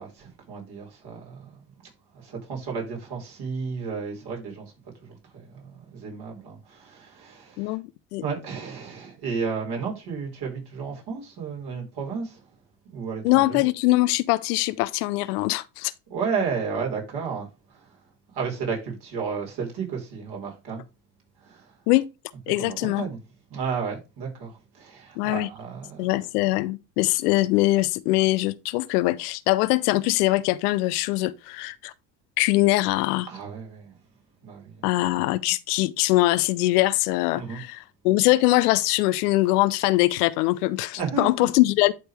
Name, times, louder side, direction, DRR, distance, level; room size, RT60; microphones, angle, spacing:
voice 1, 0.0-1.5 2.1-4.7 5.0-5.2 5.5-7.8 8.2-12.4 12.8-13.6 16.1-17.9 18.3-20.8 21.4-21.7 22.6-23.2 23.5-26.1 33.3-33.9 34.4-34.8 37.3-37.6 41.0-41.3, right 5 dB, 50° right, 5.0 m, -33 dB
voice 2, 13.2-15.9 21.9-22.1 22.5-23.0 25.2-25.5 26.0-31.9 32.4-33.3 34.8-41.9, left 19 dB, 65° left, 0.7 m, -22 dB
11.5 x 4.3 x 3.3 m
hypercardioid pair, 70°, 50 cm